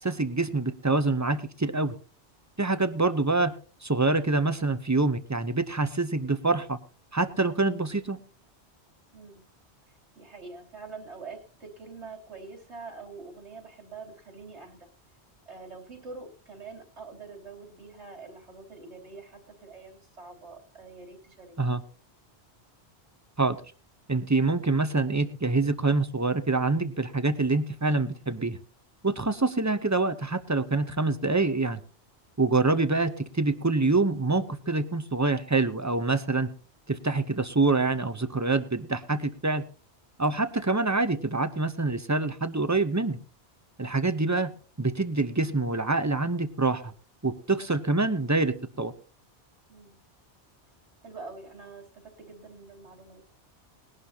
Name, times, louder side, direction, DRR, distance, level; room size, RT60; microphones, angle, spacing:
voice 1, 0.0-1.9 2.6-3.5 3.8-6.8 7.1-8.2 21.6-21.8 23.4-23.6 24.1-28.6 29.0-31.8 32.4-36.5 36.9-39.6 40.2-43.2 43.8-44.5 44.8-46.9 47.2-48.9, right 3 dB, 20° right, 11 dB, 0.7 m, -26 dB
voice 2, 9.1-9.4 9.9-14.9 15.5-21.8 29.2-29.4 49.7-50.0 51.0-53.3, right 4 dB, 90° right, 1 dB, 3.5 m, -45 dB
20.0 x 11.5 x 2.8 m, 0.38 s
omnidirectional pair, 1.1 m